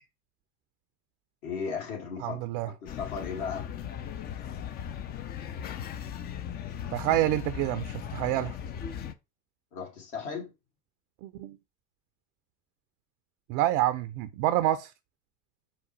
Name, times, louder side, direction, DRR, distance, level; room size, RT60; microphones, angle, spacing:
voice 1, 1.4-2.5 2.8-3.7 9.7-10.5, left 6 dB, 60° left, 1.9 m, -35 dB
voice 2, 2.2-2.7 6.9-8.5 11.2-11.6 13.5-14.9, right 14 dB, 45° right, 0.4 m, -27 dB
sound 1, 2.9-9.1, left 9 dB, 25° left, 0.3 m, -38 dB
4.8 x 2.1 x 4.4 m
figure-of-eight pair, 75°, 45 cm